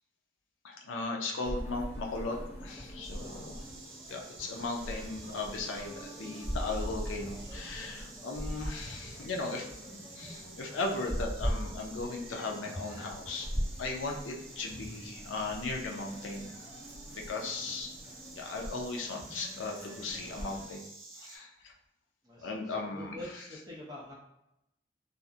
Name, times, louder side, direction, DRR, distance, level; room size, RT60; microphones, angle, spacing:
voice 1, 0.6-3.6 4.1-9.7 10.2-13.5 13.8-16.6 17.1-17.9 18.3-20.8 21.2-21.7 22.4-23.4, left 3 dB, 80° left, 1 dB, 0.4 m, -37 dB
sound 1, 1.4-20.6, equal, 35° left, 0.7 m, -41 dB
Insect, 3.0-21.4, right 3 dB, 80° right, 0.7 m, -51 dB
voice 2, 3.2-3.5 22.2-24.1, left 1 dB, 20° right, -4 dB, 0.6 m, -46 dB
2.4 x 2.0 x 2.6 m, 0.85 s
head